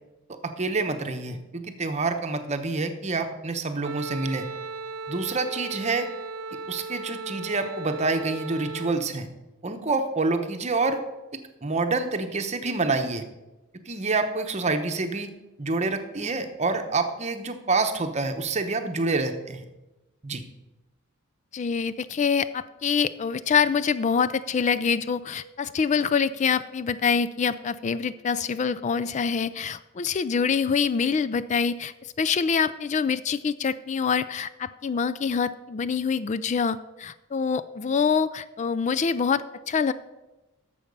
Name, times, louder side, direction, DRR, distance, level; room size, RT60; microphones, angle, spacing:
voice 1, 0.4-4.5 5.1-6.1 6.7-9.3 9.6-11.0 11.6-13.3 13.9-15.3 15.6-19.6 20.2-20.4, right 3 dB, 30° right, 7 dB, 0.9 m, -27 dB
Wind instrument woodwind instrument, 3.8-9.0, right 4 dB, 75° right, 0.5 m, -37 dB
voice 2, 21.5-39.9, left 6 dB, 35° left, 15 dB, 0.3 m, -25 dB
11.5 x 7.2 x 5.3 m, 1.0 s
head